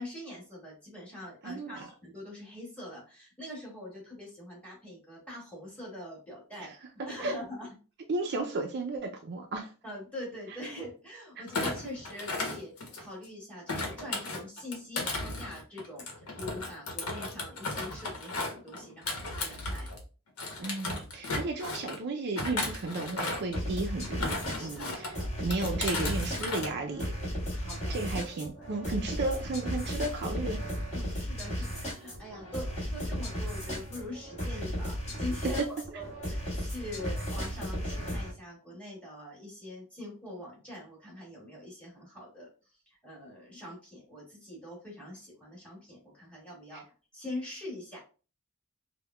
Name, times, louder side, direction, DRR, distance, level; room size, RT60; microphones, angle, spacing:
voice 1, 0.0-6.7 7.1-7.7 9.8-16.0 16.4-19.9 21.3-21.4 24.6-25.3 27.5-28.1 28.6-28.7 30.9-42.5 42.9-46.8 47.1-48.0, left 1 dB, 5° left, -4 dB, 1.9 m, -43 dB
voice 2, 1.4-1.9 6.6-6.7 7.2-7.3 8.1-9.7 20.6-24.3 24.6-27.1 27.9-30.6 31.6-31.7, right 2 dB, 50° right, 3 dB, 0.4 m, -34 dB
Thump thud, 11.5-13.2 13.7-20.0 20.4-22.0 22.4-23.6 24.0-25.1 25.5-26.7 27.0-27.3, left 2 dB, 80° left, 0.9 m, -35 dB
sound 1, 23.5-38.3, equal, 30° left, 1.7 m, -35 dB
5.3 x 2.2 x 2.2 m, 0.35 s
head